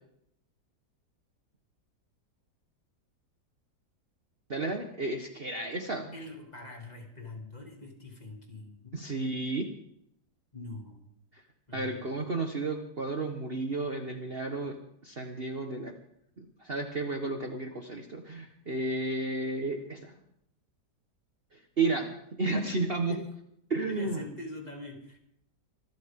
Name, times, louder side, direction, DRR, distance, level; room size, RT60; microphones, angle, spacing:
voice 1, 4.5-6.1 8.9-9.7 11.7-14.8 15.0-15.9 16.4-20.1 21.8-22.1 22.4-23.2 23.7-24.2, right 3 dB, 35° right, 4 dB, 1.4 m, -32 dB
voice 2, 6.1-9.0 10.5-11.0 11.7-12.0 23.0-23.2 23.9-25.2, left 2 dB, 25° left, 2 dB, 2.8 m, -43 dB
25.5 x 12.5 x 3.7 m, 0.71 s
omnidirectional pair, 1.8 m